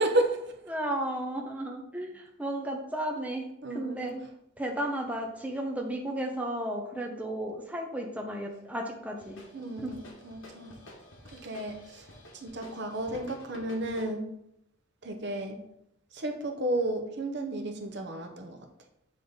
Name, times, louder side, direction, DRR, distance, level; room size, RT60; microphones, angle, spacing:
voice 1, 0.0-0.5 3.6-4.2 9.5-10.8 11.3-12.1 12.3-14.3 15.0-15.6 16.1-18.6, right 1 dB, 55° right, 5 dB, 0.8 m, -32 dB
voice 2, 0.7-4.3 4.6-9.4 9.8-9.9, right 1 dB, 5° right, 1 dB, 0.6 m, -34 dB
sound 1, 9.2-14.1, left 1 dB, 70° left, 1.4 m, -50 dB
7.8 x 3.6 x 3.9 m, 0.78 s
head